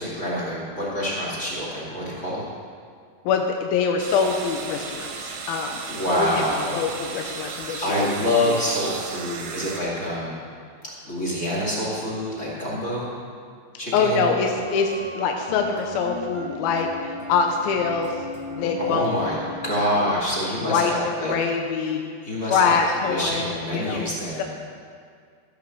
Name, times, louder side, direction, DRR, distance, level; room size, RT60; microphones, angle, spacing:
voice 1, 0.0-2.4 5.9-6.8 7.8-10.4 10.8-13.2 13.8-14.2 18.8-19.4 19.6-21.3 22.2-22.7 23.1-24.4, equal, 25° left, -6 dB, 2.0 m, -26 dB
voice 2, 3.2-5.9 6.1-6.3 6.7-8.1 8.4-8.6 13.9-18.3 18.5-19.4 20.6-22.0 22.5-24.1 24.4-24.5, left 5 dB, 75° left, 3 dB, 2.3 m, -24 dB
sound 1, 4.0-9.8, right 5 dB, 65° right, 2.7 m, -35 dB
sound 2, 14.3-20.1, left 3 dB, 45° left, 1.8 m, -36 dB
13.5 x 8.4 x 6.6 m, 2.1 s
omnidirectional pair, 5.0 m